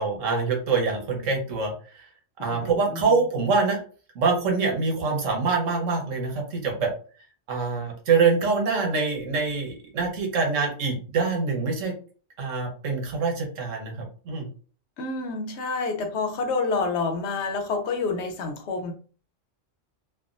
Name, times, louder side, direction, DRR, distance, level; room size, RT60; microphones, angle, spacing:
voice 1, 0.0-2.1 2.4-3.8 4.1-6.9 7.5-11.9 12.4-14.5, right 4 dB, 90° right, 1 dB, 1.3 m, -25 dB
voice 2, 2.4-3.0 15.0-18.9, left 4 dB, 70° left, 5 dB, 0.8 m, -28 dB
3.4 x 2.2 x 2.4 m, 0.39 s
omnidirectional pair, 1.3 m